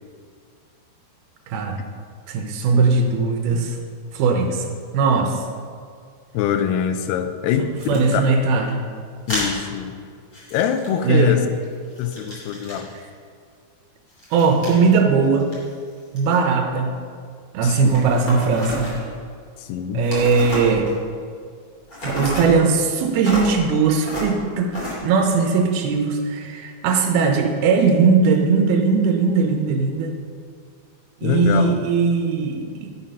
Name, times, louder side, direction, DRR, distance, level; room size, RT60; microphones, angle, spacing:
voice 1, 1.5-1.8 2.3-3.8 4.1-4.7 4.9-5.4 7.9-8.8 11.0-11.4 14.3-15.5 16.1-17.0 17.5-18.9 19.9-20.9 22.0-30.1 31.2-32.9, right 4 dB, 80° right, 4 dB, 2.7 m, -19 dB
voice 2, 6.3-8.2 9.3-10.0 10.5-11.5 12.0-12.9 17.6-17.9 19.6-20.1 31.2-31.7, left 9 dB, 90° left, 8 dB, 2.7 m, -24 dB
sound 1, 7.8-8.0 9.3-9.5 10.3-11.3 11.6-13.0 14.1-14.8 15.2-16.3 17.6-19.1 20.0-21.1 21.9-22.5 23.2-23.5 24.0-24.3 24.7-24.9, left 1 dB, 25° left, 2.6 m, -30 dB
12.0 x 5.9 x 5.5 m, 2.1 s
omnidirectional pair, 4.7 m